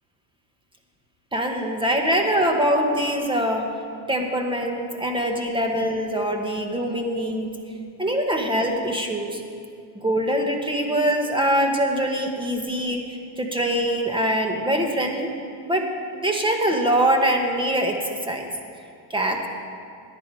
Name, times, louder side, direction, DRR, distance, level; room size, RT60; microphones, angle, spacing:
voice 1, 1.3-3.7 4.1-7.5 8.0-9.4 9.9-13.0 13.4-15.3 15.7-18.0 18.3-18.5 19.1-19.5, right 1 dB, 10° right, 3 dB, 1.7 m, -23 dB
17.5 x 11.0 x 4.9 m, 2.3 s
cardioid pair, 115°, 50 cm